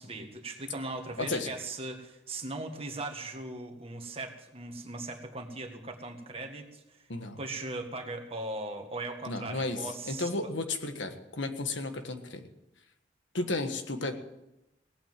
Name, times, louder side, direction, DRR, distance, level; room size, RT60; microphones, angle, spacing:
voice 1, 0.0-7.1 7.4-10.3, right 2 dB, 35° right, 4 dB, 1.8 m, -39 dB
voice 2, 1.2-1.5 7.1-7.4 9.2-12.5 13.3-14.1, left 2 dB, 90° left, 6 dB, 1.6 m, -33 dB
18.0 x 8.9 x 7.6 m, 0.92 s
head